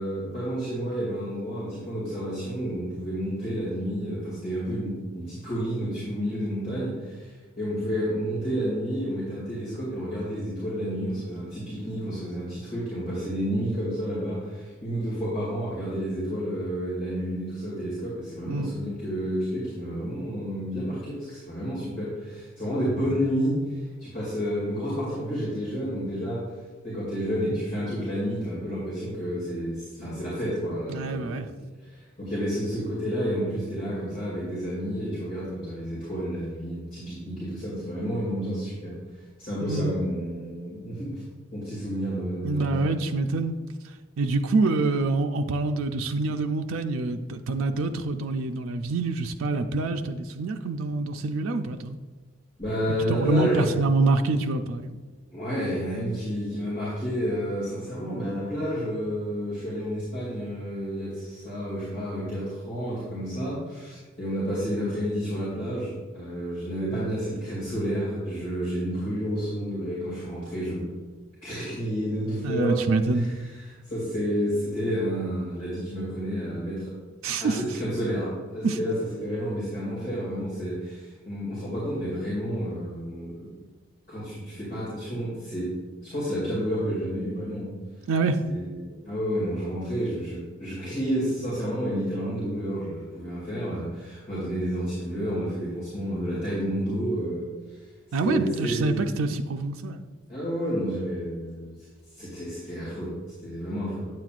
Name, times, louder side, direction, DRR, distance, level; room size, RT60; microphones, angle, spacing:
voice 1, 0.0-26.4 26.8-31.5 31.8-39.0 39.4-41.2 41.5-43.0 52.6-53.8 55.3-70.9 71.4-72.8 73.1-76.9 77.4-83.6 84.1-85.7 86.0-87.7 88.4-97.8 98.2-99.1 100.3-101.7 102.1-103.1 103.4-104.1, equal, 40° left, -8 dB, 2.4 m, -30 dB
voice 2, 18.5-18.8 30.9-31.5 39.6-40.0 42.4-43.6 44.2-52.0 53.1-55.0 72.4-73.3 77.2-77.6 78.6-78.8 88.1-88.4 98.1-100.0, right 3 dB, 85° right, 6 dB, 0.4 m, -26 dB
9.0 x 7.6 x 2.4 m, 1.3 s
head